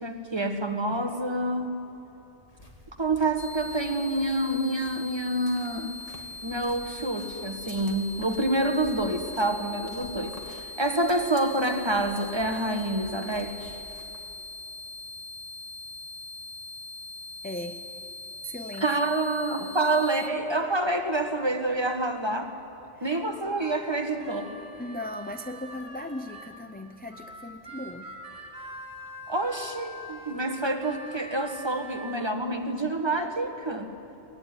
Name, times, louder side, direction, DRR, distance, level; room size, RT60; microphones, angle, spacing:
voice 1, 0.0-1.8 3.0-6.0 6.4-13.8 18.8-22.5 23.0-24.5 29.3-33.9, right 2 dB, 20° right, 5 dB, 1.5 m, -27 dB
sound 1, 2.5-14.4, left 1 dB, 30° left, 2.4 m, -50 dB
sound 2, 3.4-20.3, left 2 dB, 60° left, 1.2 m, -41 dB
voice 2, 17.4-17.8 18.4-18.9 22.9-23.1 24.8-28.2, left 1 dB, 10° left, 6 dB, 0.5 m, -37 dB
Harmonica, 23.1-26.5 27.1-32.2, equal, 5° right, 3.2 m, -44 dB
22.5 x 19.0 x 9.7 m, 2.9 s
omnidirectional pair, 1.3 m